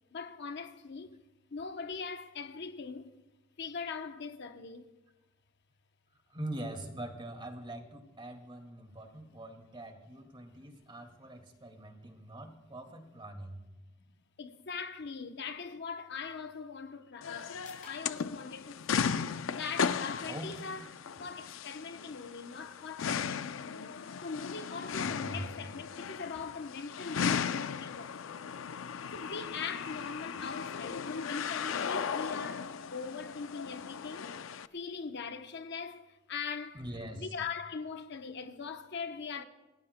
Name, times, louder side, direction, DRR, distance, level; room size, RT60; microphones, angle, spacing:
voice 1, 0.1-3.2 3.6-4.9 14.4-19.2 19.5-20.9 21.2-28.5 29.1-34.3 34.7-36.9 37.2-39.4, left 5 dB, 60° left, 0.8 m, -41 dB
voice 2, 6.3-13.7 20.3-20.5 25.0-25.5 36.7-37.3, right 1 dB, 25° right, 2.1 m, -43 dB
sound 1, 16.9-30.8, left 4 dB, 40° left, 5.7 m, -65 dB
sound 2, 17.2-34.7, left 6 dB, 80° left, 0.5 m, -36 dB
26.5 x 18.0 x 2.2 m
head